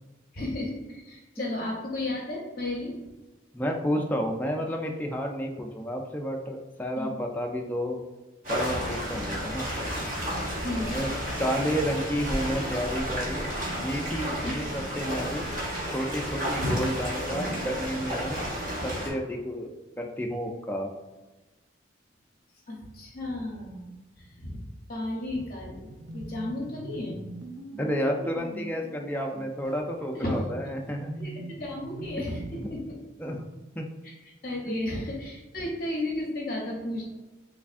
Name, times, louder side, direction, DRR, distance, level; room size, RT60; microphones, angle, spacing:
voice 1, 0.3-2.9 7.0-7.2 10.6-10.9 14.4-14.5 22.7-25.9 26.1-27.2 30.1-30.5 31.2-33.0 34.0-34.1 34.4-37.1, left 1 dB, 50° left, -2 dB, 0.7 m, -33 dB
voice 2, 3.5-8.0 8.5-9.7 10.8-11.1 11.4-13.5 13.8-15.5 15.9-18.5 18.8-19.7 20.0-20.9 27.8-31.1 33.2-33.5 33.8-33.9, equal, 10° left, 1 dB, 0.3 m, -31 dB
sound 1, 8.4-19.1, equal, 45° right, 1.0 m, -31 dB
sound 2, 25.9-32.7, right 1 dB, 75° right, 0.5 m, -42 dB
3.4 x 3.3 x 2.4 m, 1.2 s
head